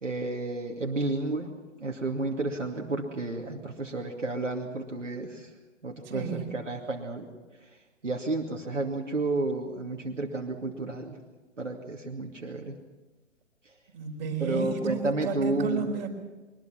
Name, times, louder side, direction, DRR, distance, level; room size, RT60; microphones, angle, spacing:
voice 1, 0.0-1.5 1.8-5.5 5.8-7.3 8.0-11.2 11.6-12.8 14.4-15.9, right 2 dB, 80° right, 1 dB, 2.6 m, -31 dB
voice 2, 6.0-6.5 13.9-16.1, right 5 dB, 35° right, 1 dB, 4.6 m, -32 dB
23.0 x 21.5 x 5.9 m, 1.2 s
figure-of-eight pair, 130°, 37 cm